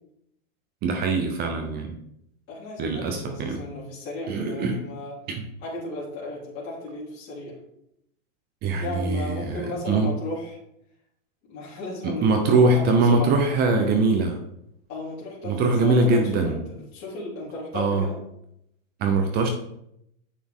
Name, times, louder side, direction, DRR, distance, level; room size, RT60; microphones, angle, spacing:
voice 1, 0.8-2.0 2.8-3.6 4.3-4.8 5.3-5.4 8.6-10.1 12.0-14.4 15.4-16.6 17.7-18.1 19.0-19.5, right 3 dB, 25° right, 5 dB, 0.7 m, -22 dB
voice 2, 2.5-5.1 5.6-7.6 8.8-10.6 11.5-13.3 14.9-16.6 16.9-18.2, left 2 dB, 35° left, -7 dB, 3.5 m, -34 dB
8.5 x 6.1 x 3.7 m, 0.77 s
supercardioid pair, 160°, 40 cm